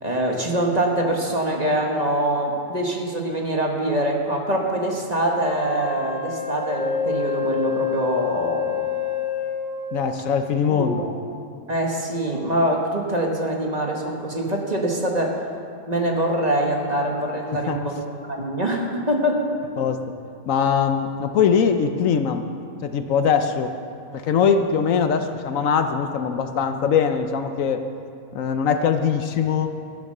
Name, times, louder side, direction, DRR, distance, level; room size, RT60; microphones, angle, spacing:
voice 1, 0.0-8.8 10.8-11.1 11.7-15.3 15.9-18.0 18.3-19.6, right 1 dB, 30° right, 0 dB, 1.5 m, -24 dB
Wind instrument woodwind instrument, 5.4-10.0, left 7 dB, 25° left, 1.7 m, -27 dB
voice 2, 9.9-11.0 17.7-17.8 19.8-20.0 20.5-22.5 22.8-23.7 24.1-27.8 28.3-29.8, left 6 dB, 70° left, 7 dB, 1.1 m, -21 dB
13.0 x 10.5 x 6.6 m, 2.5 s
omnidirectional pair, 1.5 m